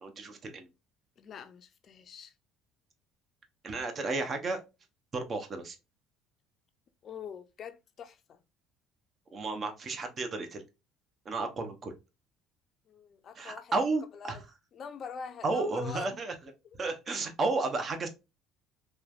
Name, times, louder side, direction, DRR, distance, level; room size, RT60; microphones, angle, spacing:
voice 1, 0.0-0.7 3.6-4.6 5.1-5.8 9.3-10.6 11.2-11.9 13.4-14.4 15.4-16.3 16.8-18.1, right 3 dB, 35° right, 0.7 m, -32 dB
voice 2, 1.2-2.3 7.0-8.4 12.9-13.7 14.1-14.4 14.7-16.2, left 7 dB, 45° left, 0.4 m, -44 dB
3.1 x 2.2 x 2.4 m
supercardioid pair, 100°, 0 cm